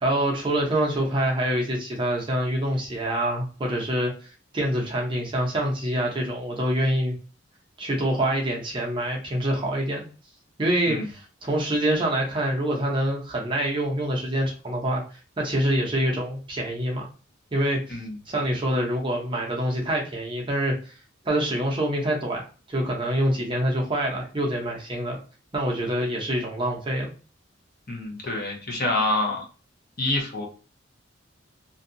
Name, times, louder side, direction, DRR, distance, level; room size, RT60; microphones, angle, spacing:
voice 1, 0.0-4.1 4.5-7.2 7.8-10.1 10.6-15.0 15.4-17.1 17.5-18.0 18.3-20.9 21.2-25.2 25.5-27.1, right 1 dB, 25° right, -1 dB, 0.6 m, -26 dB
voice 2, 27.9-29.4 30.0-30.4, left 2 dB, 45° left, 0 dB, 0.8 m, -27 dB
2.6 x 2.3 x 2.6 m, 0.36 s
head